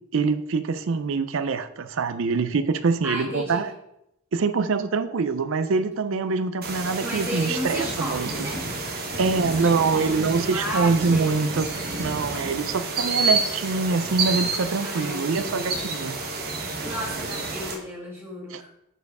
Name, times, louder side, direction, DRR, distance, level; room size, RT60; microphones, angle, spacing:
voice 1, 0.1-3.7 4.3-8.3 9.2-11.7 12.0-16.2 18.5-18.6, right 4 dB, 60° right, 11 dB, 0.5 m, -24 dB
voice 2, 3.0-3.6 7.0-8.7 9.1-11.3 14.8-15.7 16.8-18.8, equal, 10° right, -5 dB, 2.1 m, -34 dB
sound 1, 6.6-17.7, right 3 dB, 45° right, 1.1 m, -29 dB
7.0 x 4.5 x 4.8 m, 0.81 s
head